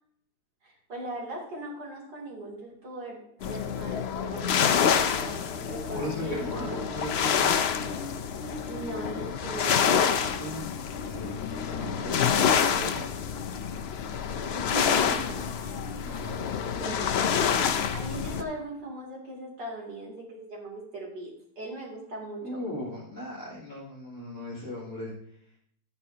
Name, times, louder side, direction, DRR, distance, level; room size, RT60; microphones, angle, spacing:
voice 1, 0.6-7.3 8.7-9.9 14.5-15.8 16.8-17.3 17.9-22.6, right 2 dB, 75° right, -2 dB, 3.6 m, -39 dB
sound 1, 3.4-18.4, left 7 dB, 75° left, 0.5 m, -27 dB
voice 2, 5.9-7.6 10.4-13.1 15.1-15.2 16.0-17.2 22.4-25.1, left 1 dB, 10° left, -10 dB, 5.0 m, -38 dB
12.5 x 9.7 x 2.8 m, 0.68 s
omnidirectional pair, 1.9 m